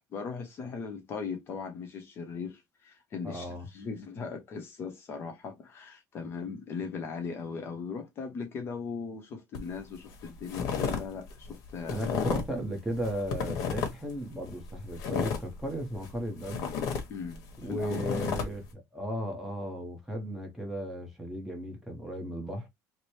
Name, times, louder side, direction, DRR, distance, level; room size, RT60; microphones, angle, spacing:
voice 1, 0.0-12.2 17.1-17.4 17.7-18.0, left 5 dB, 35° left, 0.8 m, -38 dB
voice 2, 3.2-3.7 11.9-16.7 17.6-22.7, right 1 dB, 5° right, 0.9 m, -35 dB
sound 1, 9.5-9.8 10.1-11.0 11.3-12.6 12.9-14.1 14.5-16.1 16.4-18.4, left 6 dB, 70° left, 1.1 m, -32 dB
3.1 x 2.1 x 4.2 m
cardioid pair, 175°, 7 cm